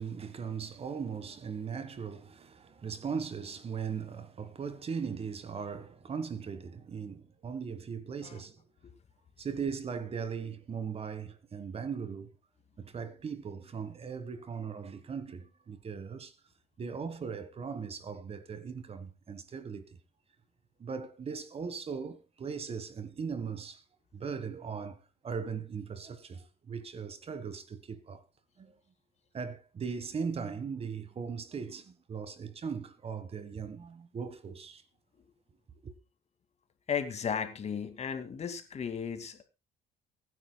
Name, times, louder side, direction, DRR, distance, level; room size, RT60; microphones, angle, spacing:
voice 1, 0.0-8.7 9.4-12.3 12.8-16.3 16.8-19.9 20.8-23.8 24.1-28.2 28.6-28.8 29.3-34.8 35.8-35.9, right 6 dB, 35° right, 1.5 m, -39 dB
voice 2, 36.9-39.4, left 7 dB, 40° left, 2.3 m, -35 dB
23.5 x 9.8 x 2.3 m
cardioid pair, 110°, 17 cm